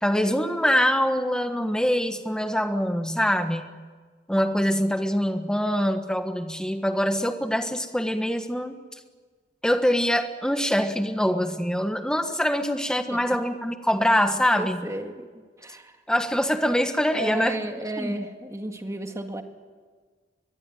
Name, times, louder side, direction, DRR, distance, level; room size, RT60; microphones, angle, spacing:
voice 1, 0.0-3.7 4.3-8.8 9.6-14.9 16.1-17.6 18.0-18.2, equal, 5° left, 7 dB, 1.4 m, -24 dB
voice 2, 14.6-16.0 17.1-19.4, right 1 dB, 15° right, 5 dB, 1.9 m, -33 dB
22.5 x 22.0 x 9.3 m, 1.5 s
head